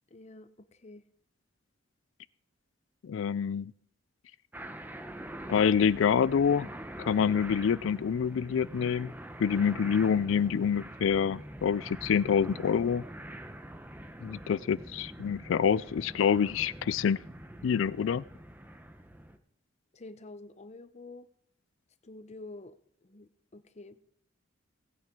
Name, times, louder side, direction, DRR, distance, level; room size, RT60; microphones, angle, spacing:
voice 1, 0.1-1.0 19.9-21.3 22.0-22.8 23.0-24.0, left 2 dB, 35° left, 12 dB, 0.8 m, -48 dB
voice 2, 3.0-3.7 5.5-6.7 7.0-9.1 9.4-13.0 14.2-17.2 17.6-18.2, left 7 dB, 70° left, 20 dB, 0.4 m, -27 dB
sound 1, 4.5-19.4, right 1 dB, 10° right, 0.8 m, -44 dB
18.0 x 8.8 x 3.7 m, 0.65 s
head